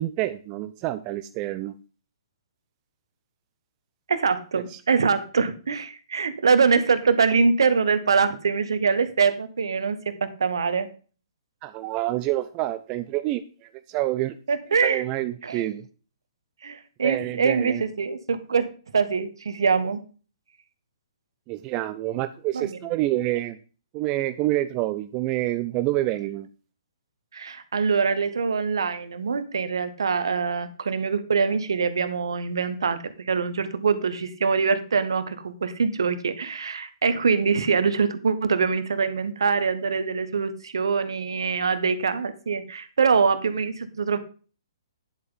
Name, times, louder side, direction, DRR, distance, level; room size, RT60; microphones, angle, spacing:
voice 1, 0.0-1.7 4.7-4.8 11.6-13.4 13.9-14.4 14.8-15.8 17.0-17.8 21.5-23.6 23.9-26.5, right 16 dB, 30° right, 12 dB, 0.6 m, -27 dB
voice 2, 4.1-10.9 14.5-15.0 15.4-15.6 16.6-18.7 18.9-20.0 22.5-22.7 27.3-44.2, right 5 dB, 70° right, 12 dB, 1.2 m, -24 dB
10.5 x 7.8 x 3.9 m, 0.37 s
figure-of-eight pair, 125°, 3 cm